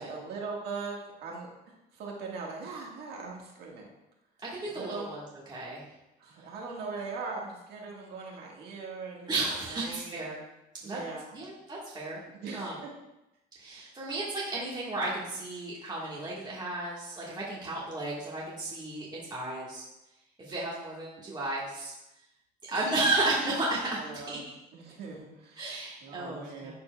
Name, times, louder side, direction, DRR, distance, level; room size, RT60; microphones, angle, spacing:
voice 1, 0.0-3.9 4.7-5.1 6.2-9.4 9.7-10.2 10.8-11.3 12.3-12.9 17.7-17.8 22.7-23.0 23.9-24.4 24.7-26.7, right 4 dB, 70° right, -1 dB, 1.6 m, -40 dB
voice 2, 4.5-5.8 9.3-10.4 10.8-11.0 11.3-12.2 12.5-12.8 13.6-19.8 20.4-21.9 22.6-24.3 25.6-26.7, right 2 dB, 25° right, -6 dB, 1.5 m, -33 dB
11.0 x 4.2 x 2.3 m, 0.93 s
cardioid pair, 110°, 17 cm